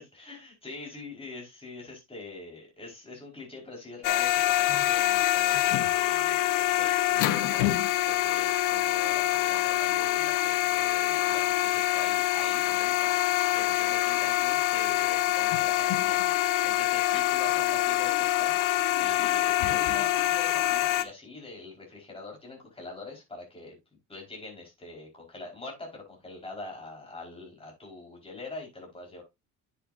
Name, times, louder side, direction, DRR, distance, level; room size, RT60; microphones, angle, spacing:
voice 1, 0.0-7.7 8.0-23.8 24.1-29.2, left 3 dB, 15° left, -1 dB, 4.7 m, -44 dB
sound 1, 4.0-21.0, left 15 dB, 75° left, 1.0 m, -25 dB
10.0 x 7.5 x 2.6 m, 0.22 s
cardioid pair, 100°, 32 cm